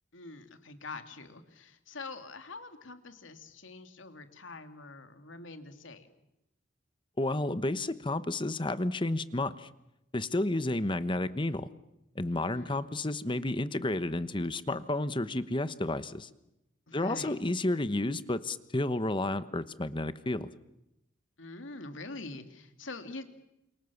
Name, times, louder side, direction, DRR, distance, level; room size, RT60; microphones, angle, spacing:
voice 1, 0.1-6.1 12.4-12.7 16.9-17.4 21.4-23.2, left 3 dB, 80° left, 7 dB, 2.8 m, -44 dB
voice 2, 7.2-9.7 10.1-11.7 12.1-16.3 16.9-20.5, left 2 dB, 25° left, 13 dB, 1.1 m, -31 dB
29.0 x 27.5 x 7.2 m, 0.87 s
head